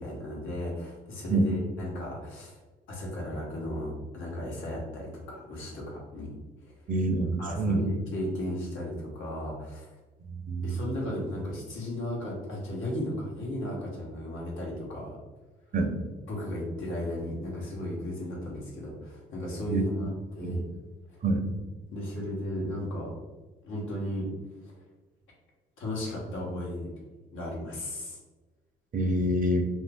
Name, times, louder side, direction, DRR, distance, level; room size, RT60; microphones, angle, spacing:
voice 1, 0.0-2.5 2.9-6.3 7.4-9.9 10.6-15.2 16.3-20.1 20.4-20.7 21.9-23.1 23.6-24.3 25.8-26.9 27.3-28.2, left 1 dB, 90° left, -3 dB, 1.1 m, -35 dB
voice 2, 6.9-7.9 10.5-10.7 15.7-15.9 19.6-19.8 20.4-20.6 21.2-21.4 28.9-29.7, right 1 dB, 45° right, 4 dB, 0.6 m, -26 dB
2.6 x 2.5 x 3.4 m, 1.2 s
cardioid pair, 90°, 20 cm